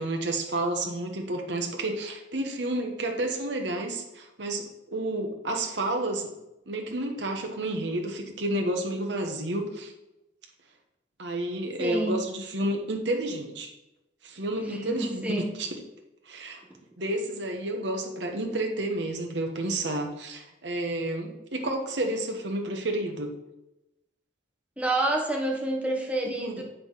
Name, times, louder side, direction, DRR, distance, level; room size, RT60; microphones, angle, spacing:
voice 1, 0.0-4.6 4.9-6.3 6.7-9.9 11.2-13.7 14.2-15.8 16.3-16.6 17.0-23.3 26.2-26.6, right 1 dB, 70° right, 2 dB, 1.3 m, -30 dB
voice 2, 11.8-12.2 14.6-15.5 24.8-26.6, right 1 dB, 5° right, 0 dB, 1.3 m, -28 dB
7.7 x 5.6 x 5.6 m, 0.92 s
head